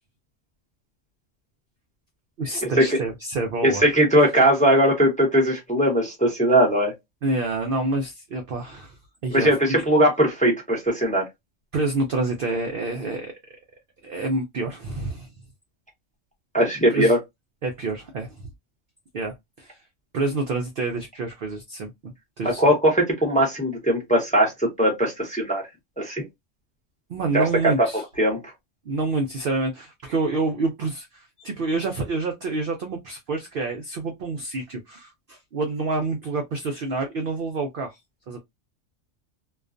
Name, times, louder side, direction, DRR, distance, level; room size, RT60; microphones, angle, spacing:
voice 1, 2.4-3.8 7.2-9.5 11.7-13.3 14.0-15.3 16.9-17.1 17.6-18.5 19.1-19.8 20.1-22.7 27.1-28.0 28.9-38.0 38.3-38.4, right 3 dB, 65° right, 0.6 m, -28 dB
voice 2, 3.6-6.9 9.3-11.2 16.5-17.2 22.6-25.6 26.0-26.3 27.3-27.4 28.2-28.4, equal, 5° left, 0.7 m, -20 dB
2.4 x 2.2 x 2.4 m
omnidirectional pair, 1.3 m